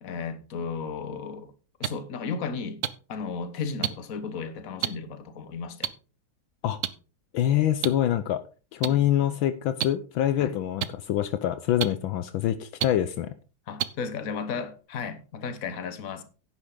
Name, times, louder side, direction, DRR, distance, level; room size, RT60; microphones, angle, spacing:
voice 1, 0.0-1.5 1.8-2.8 3.1-5.9 8.9-9.0 10.4-10.5 13.7-16.2, left 5 dB, 45° left, 1.5 m, -34 dB
sound 1, 1.8-1.9 2.8-2.9 3.8-3.9 4.8-4.9 5.8-5.9 6.8-6.9 7.8-7.9 8.8-8.9 9.8-9.9 10.8-10.9 11.8-11.9 12.8-12.9 13.8-13.9 14.8-14.9, right 10 dB, 85° right, 0.7 m, -26 dB
voice 2, 7.3-8.4 8.7-13.3, left 11 dB, 75° left, 1.4 m, -25 dB
10.5 x 10.0 x 3.8 m
omnidirectional pair, 2.3 m